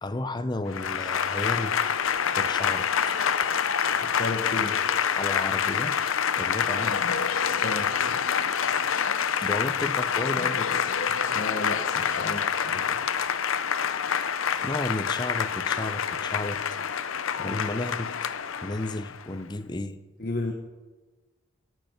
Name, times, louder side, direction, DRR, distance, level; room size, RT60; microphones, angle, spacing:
voice 1, 0.0-1.8 2.3-3.2 5.2-6.0 6.4-7.0 9.4-10.8 14.6-16.8 17.4-18.1 18.6-20.0, left 2 dB, 20° left, 12 dB, 0.6 m, -33 dB
Applause / Crowd, 0.7-19.2, left 7 dB, 75° left, 0.6 m, -27 dB
voice 2, 4.0-4.8 6.9-7.0 7.6-7.9 11.3-13.0 17.4-17.5 20.2-20.5, left 2 dB, 45° left, 3 dB, 1.0 m, -33 dB
17.0 x 9.3 x 5.7 m, 1.3 s
head